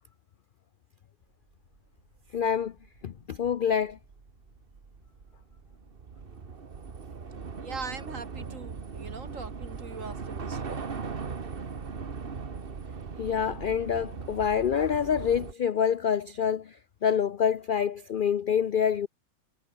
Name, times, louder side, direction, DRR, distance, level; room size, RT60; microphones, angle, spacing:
Train / Subway metro underground, 2.2-2.3 2.5-15.5, right 5 dB, 40° right, 1.5 m, -39 dB
voice 1, 2.3-2.7 3.0-4.0 13.2-16.8 17.0-19.1, left 8 dB, 60° left, 0.5 m, -26 dB
voice 2, 7.6-11.0, right 4 dB, 60° right, 2.6 m, -41 dB
omnidirectional pair, 1.5 m